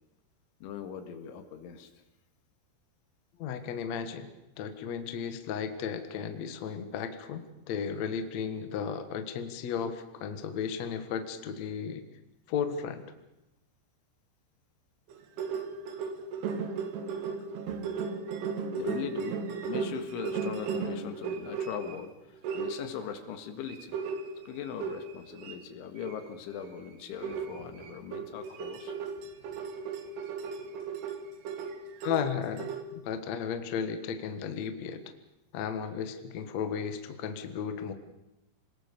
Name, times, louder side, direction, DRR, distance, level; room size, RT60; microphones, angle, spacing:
voice 1, 0.6-1.9 18.7-24.0 24.5-29.0, left 8 dB, 90° left, 7 dB, 4.2 m, -40 dB
voice 2, 3.4-4.3 4.6-12.0 12.5-13.1 32.0-35.0 35.5-37.9, left 7 dB, 60° left, 8 dB, 1.9 m, -34 dB
sound 1, 15.1-22.0 22.4-23.1 23.7-25.6 26.0-26.2 26.6-26.7 27.2-32.8, right 5 dB, 65° right, 3.4 m, -36 dB
27.0 x 20.0 x 6.9 m, 0.92 s
omnidirectional pair, 5.4 m